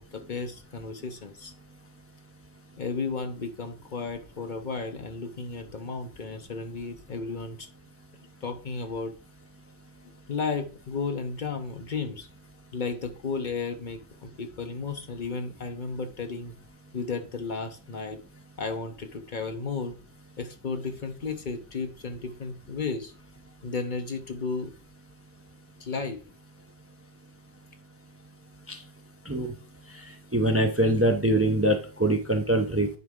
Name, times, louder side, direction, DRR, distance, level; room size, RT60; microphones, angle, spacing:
voice 1, 0.0-1.5 2.8-7.7 8.4-9.1 10.3-12.3 12.7-16.6 16.9-18.2 18.6-20.0 20.4-23.1 23.6-24.7 25.8-26.2, left 4 dB, 50° left, 7 dB, 0.8 m, -33 dB
voice 2, 30.3-32.9, right 1 dB, 15° right, 4 dB, 0.6 m, -23 dB
9.7 x 4.1 x 3.6 m, 0.37 s
omnidirectional pair, 1.1 m